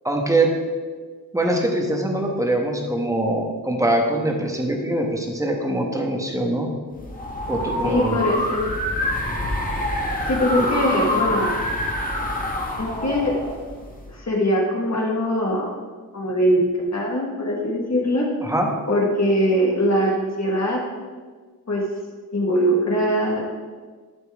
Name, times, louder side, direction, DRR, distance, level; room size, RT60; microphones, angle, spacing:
voice 1, 0.0-0.5 1.3-6.7 7.5-8.3 10.6-10.7 18.4-18.7, right 1 dB, 10° right, 1 dB, 1.1 m, -23 dB
sound 1, 6.9-14.1, left 1 dB, 20° left, 1.3 m, -26 dB
voice 2, 7.8-8.6 10.3-11.6 12.8-13.3 14.1-15.7 16.1-16.6 16.9-18.2 18.9-20.8 21.7-21.8 22.3-23.4, equal, 45° left, -2 dB, 1.6 m, -21 dB
12.5 x 5.5 x 3.5 m, 1.5 s
wide cardioid pair, 115°, 37 cm